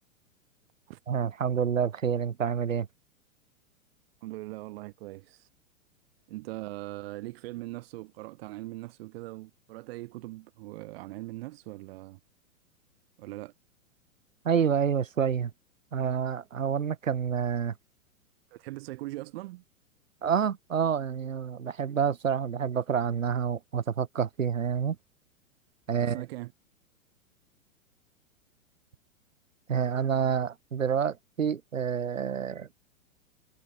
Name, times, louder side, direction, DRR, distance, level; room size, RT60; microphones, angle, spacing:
voice 1, 1.1-2.9 14.4-15.5 15.9-17.7 20.2-25.0 25.9-26.2 29.7-32.7, right 7 dB, 70° right, 3.3 m, -28 dB
voice 2, 4.2-5.5 6.3-12.2 13.2-13.5 18.5-19.6 25.9-26.5, right 19 dB, 45° right, 5.8 m, -40 dB
figure-of-eight pair, 110°, 40 cm